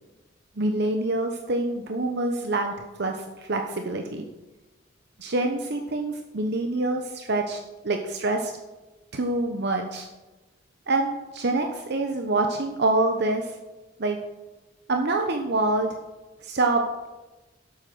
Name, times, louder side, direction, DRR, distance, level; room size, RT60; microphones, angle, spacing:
voice 1, 0.6-4.2 5.2-7.6 7.8-8.5 9.1-10.1 10.9-13.5 14.0-14.2 14.9-15.9 16.4-17.1, right 2 dB, 60° right, 4 dB, 1.0 m, -26 dB
12.5 x 8.5 x 6.2 m, 1.1 s
head